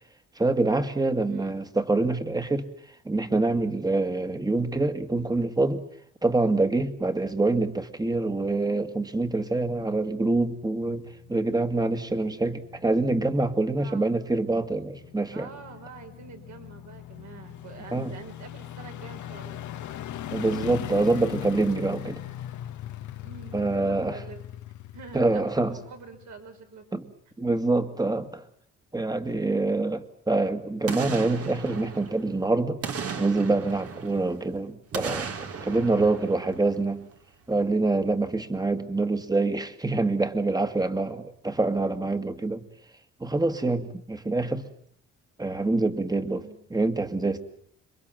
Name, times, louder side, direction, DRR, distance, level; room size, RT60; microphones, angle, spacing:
voice 1, 0.4-2.7 3.1-5.8 6.2-11.0 11.3-15.5 17.9-18.1 20.3-22.2 23.5-24.2 25.1-25.7 26.9-27.1 27.4-28.4 28.9-32.8 33.2-37.0 37.5-42.6 43.2-44.6 45.4-46.4 46.7-47.4, right 2 dB, 15° right, 9 dB, 2.0 m, -25 dB
voice 2, 1.3-1.6 13.8-14.1 15.3-19.7 23.2-24.4 24.9-26.9 46.3-46.6, right 5 dB, 65° right, 4 dB, 5.3 m, -45 dB
sound 1, 10.1-26.6 27.0-27.1, left 12 dB, 75° left, 1.4 m, -40 dB
Boom, 30.9-32.4 32.8-34.5 34.9-37.2 37.5-37.6, right 6 dB, 50° right, 2.2 m, -36 dB
27.0 x 23.0 x 7.6 m, 0.65 s
cardioid pair, 90°, 30 cm